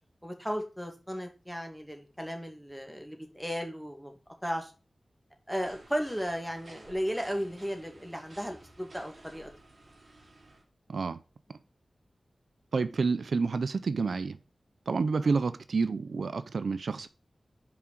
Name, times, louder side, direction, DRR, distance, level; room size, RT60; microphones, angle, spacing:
voice 1, 0.2-4.1 4.4-4.7 5.5-9.5 15.2-15.4, equal, ahead, 2.1 m, -35 dB
sound 1, 5.6-10.6, right 2 dB, 50° right, 3.2 m, -54 dB
voice 2, 12.7-14.4 14.9-17.1, right 4 dB, 85° right, 0.5 m, -29 dB
6.0 x 5.0 x 6.1 m
wide cardioid pair, 65°, 0 cm